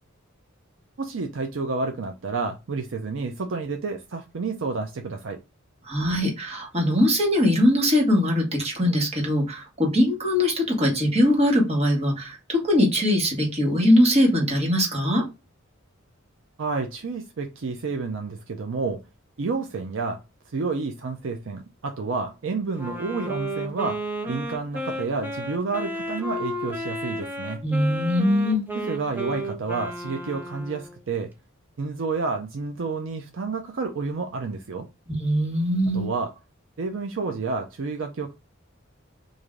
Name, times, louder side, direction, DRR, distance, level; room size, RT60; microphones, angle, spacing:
voice 1, 1.0-5.4 16.6-19.0 19.4-20.2 20.5-27.6 28.7-31.3 31.8-34.9 35.9-36.3 36.8-38.3, right 4 dB, 65° right, 0.5 m, -30 dB
voice 2, 5.8-15.3 27.6-28.6 35.1-36.1, left 1 dB, 30° right, 1.3 m, -21 dB
Wind instrument woodwind instrument, 22.8-31.0, equal, 10° right, 0.6 m, -33 dB
3.2 x 2.6 x 3.6 m
head